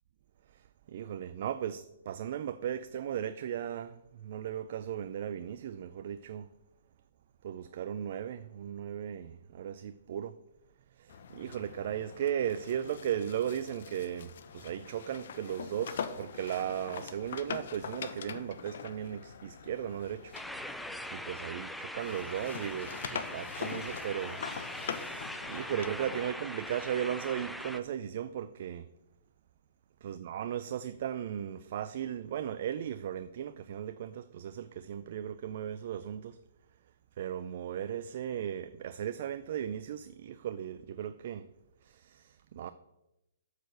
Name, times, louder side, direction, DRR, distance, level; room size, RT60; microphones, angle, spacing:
voice 1, 0.5-6.5 7.4-10.3 11.0-20.3 21.1-28.9 30.0-36.4 37.2-41.5 41.8-42.7, right 9 dB, 55° right, 0.5 m, -37 dB
sound 1, 11.1-21.7 22.0-26.3, left 7 dB, 65° left, 1.0 m, -43 dB
sound 2, 20.3-27.8, left 1 dB, ahead, 0.5 m, -41 dB
8.0 x 6.7 x 7.8 m
hypercardioid pair, 135°, 0 cm